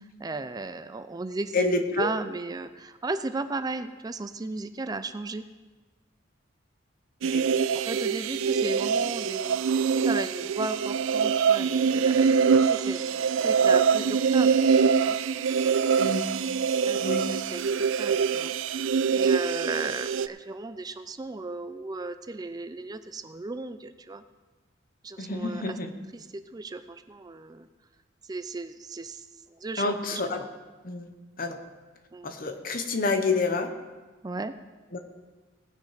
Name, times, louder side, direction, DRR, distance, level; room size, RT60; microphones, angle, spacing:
voice 1, 0.2-1.7 2.0-5.5 7.9-9.8 10.0-12.3 12.6-14.6 15.0-15.2 15.7-16.2 16.9-18.5 19.1-24.2 25.0-25.8 26.1-27.7 28.3-29.2 29.5-30.4 32.1-32.3 34.2-34.5, right 3 dB, 20° right, 10 dB, 0.4 m, -35 dB
voice 2, 1.5-2.1 7.2-7.4 16.0-16.2 17.0-17.2 25.2-25.9 29.8-30.4 30.8-31.1 31.4-31.6 32.2-33.7 34.9-35.0, left 3 dB, 45° left, 7 dB, 1.0 m, -28 dB
sound 1, 7.2-20.3, right 6 dB, 85° right, 0.4 m, -24 dB
18.0 x 6.3 x 5.0 m, 1.3 s
head